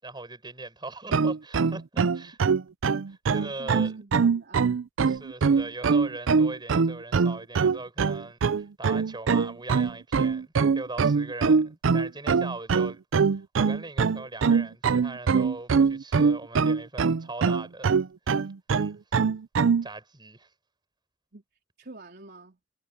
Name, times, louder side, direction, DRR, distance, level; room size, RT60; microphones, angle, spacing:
voice 1, 0.0-2.4 3.1-4.0 5.0-13.0 13.3-18.0 18.7-19.0 19.8-20.5, right 2 dB, 25° right, 6.9 m, -40 dB
sound 1, 1.1-19.8, right 5 dB, 70° right, 0.5 m, -23 dB
voice 2, 3.3-4.8 21.3-21.4 21.8-22.6, right 2 dB, 55° right, 4.0 m, -47 dB
head